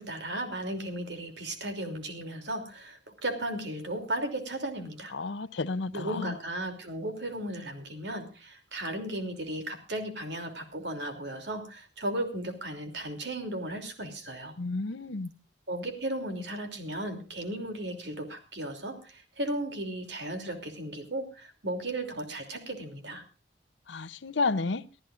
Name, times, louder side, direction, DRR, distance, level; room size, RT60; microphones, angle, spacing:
voice 1, 0.0-5.1 5.9-14.6 15.7-23.2, right 1 dB, 65° right, 3.0 m, -35 dB
voice 2, 5.1-6.3 14.6-15.3 23.9-24.8, left 3 dB, 70° left, 0.7 m, -31 dB
24.0 x 13.5 x 2.5 m
head